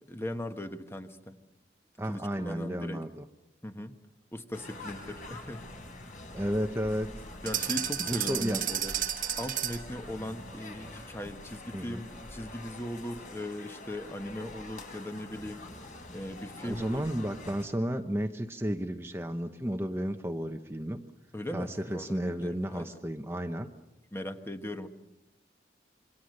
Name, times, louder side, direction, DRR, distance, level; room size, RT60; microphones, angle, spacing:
voice 1, 0.1-1.4 2.0-3.0 3.6-3.9 4.3-5.7 7.4-8.9 9.4-15.6 16.1-17.0 21.3-22.9 24.1-24.9, left 1 dB, 15° left, 7 dB, 1.3 m, -39 dB
voice 2, 2.0-3.2 6.3-7.1 8.0-8.7 11.7-12.0 16.6-21.0 21.5-23.7, equal, 15° right, 6 dB, 0.9 m, -33 dB
sound 1, 4.5-17.6, left 2 dB, 45° left, 5.0 m, -46 dB
sound 2, 7.5-9.9, right 10 dB, 50° right, 1.3 m, -32 dB
27.5 x 24.0 x 6.6 m, 0.94 s
head